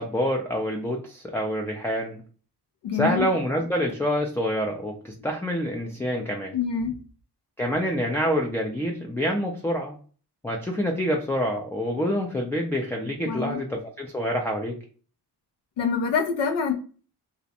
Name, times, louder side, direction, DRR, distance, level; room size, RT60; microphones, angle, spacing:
voice 1, 0.0-2.2 2.9-6.6 7.6-10.0 10.4-14.7, equal, 5° left, 1 dB, 0.3 m, -27 dB
voice 2, 2.8-3.3 6.5-7.0 13.2-13.6 15.8-16.7, left 6 dB, 90° left, 5 dB, 0.7 m, -25 dB
2.5 x 2.1 x 2.7 m, 0.39 s
cardioid pair, 90°, 41 cm